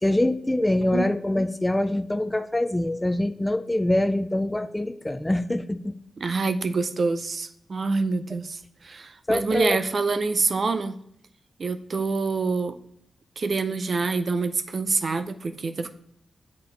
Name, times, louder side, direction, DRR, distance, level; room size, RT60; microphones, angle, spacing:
voice 1, 0.0-5.9 9.3-9.8, left 1 dB, 15° left, 12 dB, 0.4 m, -24 dB
voice 2, 6.2-8.6 8.8-10.9 11.6-12.8 13.4-15.9, right 4 dB, 55° right, 9 dB, 0.5 m, -26 dB
7.5 x 4.2 x 3.3 m, 0.69 s
cardioid pair, 70°, 0 cm